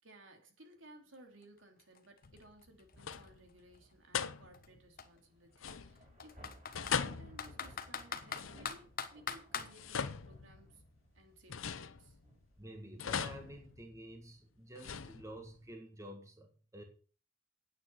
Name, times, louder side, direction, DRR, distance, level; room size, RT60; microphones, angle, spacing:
voice 1, 0.0-6.5 6.7-10.8 11.1-12.2, right 1 dB, 70° right, 3 dB, 3.3 m, -59 dB
Computer keyboard, 1.4-1.5 1.8-3.8 4.5-4.7 5.0-5.1 5.7-7.0 7.4-9.7, left 7 dB, 45° left, 1.2 m, -42 dB
sound 1, 2.2-2.7 3.0-3.5 4.1-4.8 5.6-6.2 6.7-9.0 9.6-10.9 11.5-12.5 13.0-14.2 14.7-15.6, left 6 dB, 90° left, 0.8 m, -41 dB
Thunder / Rain, 2.7-13.6, right 1 dB, 35° right, 6.6 m, -62 dB
voice 2, 12.6-16.8, right 1 dB, 15° right, 4 dB, 1.6 m, -50 dB
9.3 x 9.0 x 6.1 m, 0.40 s
head